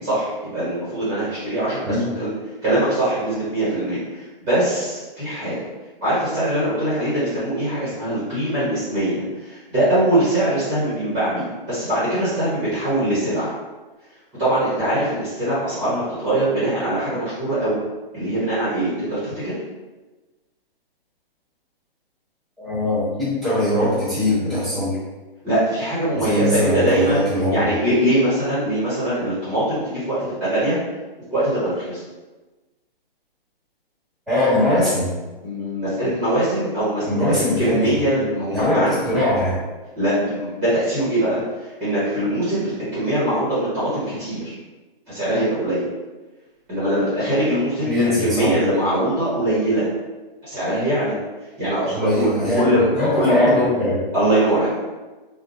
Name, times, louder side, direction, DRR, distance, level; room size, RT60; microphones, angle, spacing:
voice 1, 0.0-2.3 2.6-5.6 6.0-13.5 14.4-17.8 18.1-19.6 25.4-27.2 27.5-30.8 31.3-32.0 35.4-38.9 39.9-44.5 45.1-45.8 46.7-49.9 50.4-51.1 51.6-52.9 53.2-53.4 54.1-54.7, right 1 dB, 20° right, -12 dB, 1.0 m, -22 dB
voice 2, 22.6-25.0 26.2-27.7 34.3-35.1 37.0-37.8 38.5-39.6 47.8-48.5 51.9-54.0, left 1 dB, ahead, -13 dB, 1.4 m, -21 dB
3.7 x 2.3 x 2.5 m, 1.2 s
hypercardioid pair, 155°, 30 cm